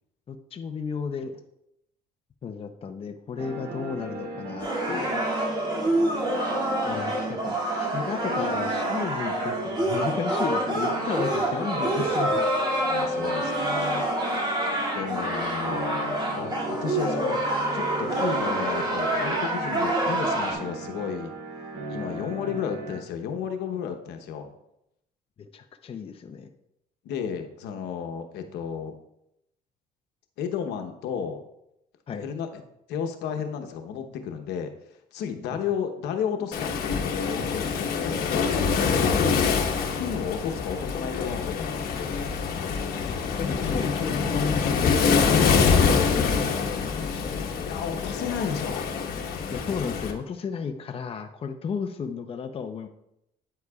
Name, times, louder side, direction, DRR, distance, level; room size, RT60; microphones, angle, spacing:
voice 1, 0.3-1.4 2.4-5.2 6.8-12.5 22.5-22.6 25.4-26.5 32.1-32.3 43.4-47.5 49.5-52.9, left 6 dB, 35° left, 6 dB, 0.6 m, -33 dB
sound 1, 3.4-23.0, right 2 dB, 80° right, 3.0 m, -38 dB
sound 2, 4.6-20.5, right 1 dB, 25° right, 2.4 m, -27 dB
voice 2, 12.9-14.1 14.9-17.4 17.7-21.3 21.9-24.5 27.0-28.9 30.4-31.4 32.1-32.5 32.9-34.7 35.1-38.3 40.0-42.2 47.6-48.9, left 7 dB, 85° left, 6 dB, 1.0 m, -33 dB
Waves surf, 36.5-50.1, left 5 dB, 65° left, 1.2 m, -25 dB
9.5 x 7.8 x 2.4 m, 0.81 s
cardioid pair, 110°, 17 cm